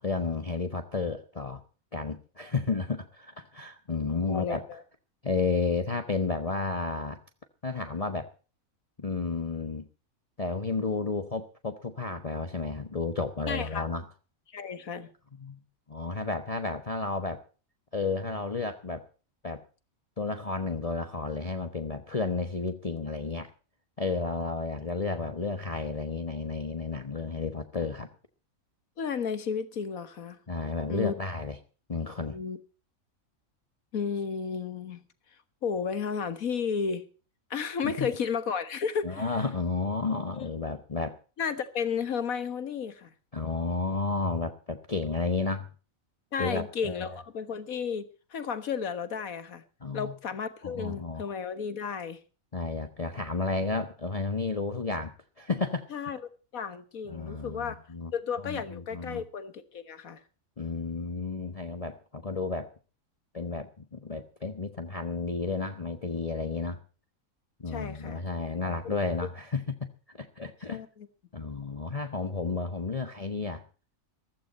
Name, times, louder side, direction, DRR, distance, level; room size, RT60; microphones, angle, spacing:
voice 1, 0.0-1.6 1.9-4.6 5.2-7.2 7.6-8.3 9.0-9.8 10.4-14.0 15.4-15.6 15.9-17.4 17.9-19.0 19.4-19.6 20.2-23.5 24.0-28.1 30.5-31.6 31.9-32.4 37.8-38.1 39.0-41.2 43.3-45.7 46.4-47.1 49.8-50.1 50.6-51.2 52.5-55.9 57.1-58.1 58.4-59.2 60.6-62.7 63.3-66.8 67.6-70.8 71.3-73.6, left 3 dB, 30° left, 1.2 m, -32 dB
voice 2, 4.2-4.8 13.5-13.8 14.5-15.1 29.0-30.4 30.9-31.1 32.3-32.6 33.9-35.0 35.6-37.0 37.5-39.3 40.3-40.5 41.4-43.1 46.3-49.6 49.9-52.2 55.9-56.2 56.5-57.8 58.1-60.2 67.7-68.2 68.6-69.0 70.7-71.1, left 6 dB, 90° left, 1.9 m, -33 dB
15.5 x 15.0 x 4.2 m
omnidirectional pair, 1.4 m